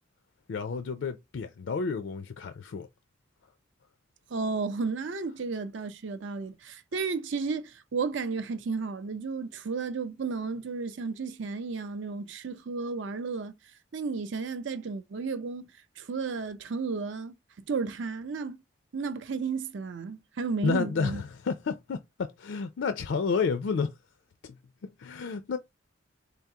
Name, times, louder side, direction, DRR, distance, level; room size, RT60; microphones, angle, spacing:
voice 1, 0.5-2.9 20.6-23.9 24.4-24.6 24.8-25.6, left 5 dB, 65° left, 0.4 m, -31 dB
voice 2, 4.3-13.6 13.9-15.7 16.0-17.3 17.7-18.6 18.9-21.2, right 4 dB, 65° right, 0.5 m, -33 dB
3.9 x 3.5 x 2.7 m
head